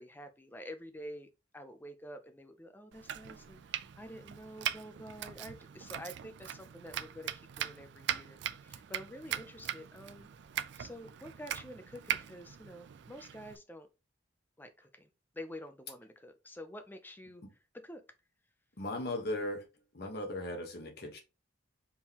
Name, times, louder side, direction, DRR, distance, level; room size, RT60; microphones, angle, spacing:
voice 1, 0.0-7.3 7.6-10.3 10.8-13.9 14.6-15.1 15.3-17.4 17.8-18.0, equal, 10° left, 0.5 m, -48 dB
Domestic sounds home sounds, 2.9-13.6, right 10 dB, 60° right, 0.3 m, -41 dB
voice 2, 18.8-19.6 19.9-21.2, left 1 dB, 55° left, 1.2 m, -37 dB
4.4 x 3.7 x 2.9 m
head